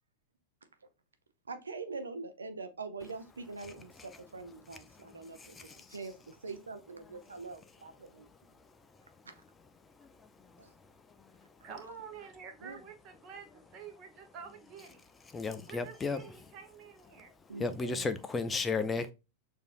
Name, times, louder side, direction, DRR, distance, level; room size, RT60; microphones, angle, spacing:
voice 1, 1.5-6.1 6.4-8.3 9.3-9.4 10.6-10.7 12.6-12.8 17.5-18.1, right 4 dB, 75° right, 0.5 m, -44 dB
voice 2, 4.9-5.9 10.0-10.1 15.3-16.2 17.6-19.1, left 4 dB, 15° left, 0.4 m, -34 dB
voice 3, 11.6-15.0 15.7-17.3, right 6 dB, 35° right, 1.1 m, -48 dB
6.5 x 2.7 x 2.4 m
figure-of-eight pair, 90°, 0 cm